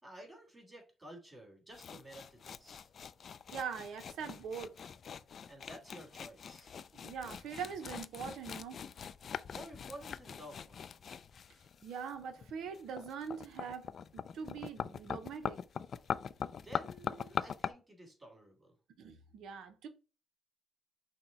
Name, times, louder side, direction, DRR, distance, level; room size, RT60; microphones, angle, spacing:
voice 1, 0.0-2.9 5.5-6.8 9.5-10.8 16.5-18.7, right 1 dB, 15° right, 2.6 m, -52 dB
sound 1, 1.7-17.7, left 7 dB, 55° left, 0.3 m, -42 dB
voice 2, 3.5-4.7 6.9-8.9 11.8-15.6 19.0-19.9, right 6 dB, 80° right, 0.6 m, -43 dB
5.9 x 2.2 x 4.0 m
cardioid pair, 90°, 0 cm